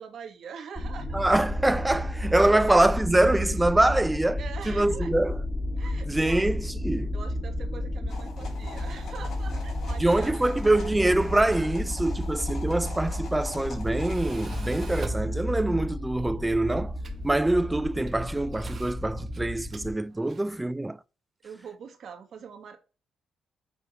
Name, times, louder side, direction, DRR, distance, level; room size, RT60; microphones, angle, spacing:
voice 1, 0.0-1.4 2.0-2.1 2.5-2.8 4.4-5.1 5.7-6.5 7.1-10.7 12.1-12.3 17.0-17.4 20.1-20.7 21.4-22.8, right 7 dB, 65° right, 1.7 m, -44 dB
sound 1, 0.8-19.9, left 1 dB, 25° left, 1.7 m, -32 dB
voice 2, 1.1-4.4 4.7-5.4 6.1-7.1 10.0-16.9 17.2-21.0, right 1 dB, 10° right, 0.4 m, -24 dB
sound 2, 8.1-15.0, left 3 dB, 60° left, 2.9 m, -45 dB
Tools, 12.6-20.6, right 3 dB, 40° right, 1.0 m, -47 dB
7.1 x 3.5 x 4.5 m
cardioid pair, 90°, 0 cm